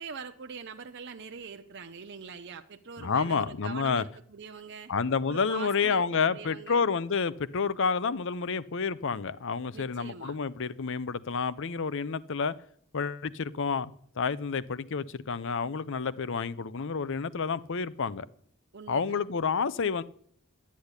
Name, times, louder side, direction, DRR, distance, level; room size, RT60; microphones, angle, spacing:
voice 1, 0.0-4.9 5.3-6.9 9.7-10.4 18.7-19.2, right 5 dB, 55° right, 0.7 m, -43 dB
voice 2, 3.0-4.0 4.9-12.5 12.9-13.9 14.2-18.3 18.9-20.0, left 5 dB, 60° left, 0.7 m, -29 dB
12.0 x 8.5 x 9.8 m
head